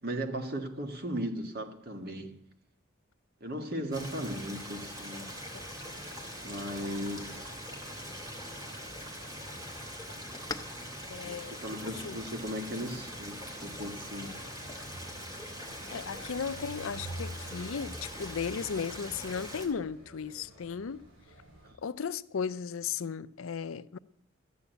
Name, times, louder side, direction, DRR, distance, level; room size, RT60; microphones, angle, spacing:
voice 1, 0.0-2.4 3.4-5.3 6.4-7.4 11.2-14.4 21.6-21.7, equal, 50° right, 1.6 m, -37 dB
Stream, 3.9-19.7, equal, 20° right, 2.3 m, -43 dB
sound 1, 5.3-21.7, right 1 dB, 85° right, 6.6 m, -50 dB
voice 2, 5.5-5.9 11.1-11.6 12.0-12.2 15.9-21.0 21.8-24.0, left 6 dB, 85° left, 0.5 m, -36 dB
sound 2, 10.2-17.1, left 3 dB, 20° left, 0.6 m, -51 dB
13.0 x 8.4 x 8.0 m
head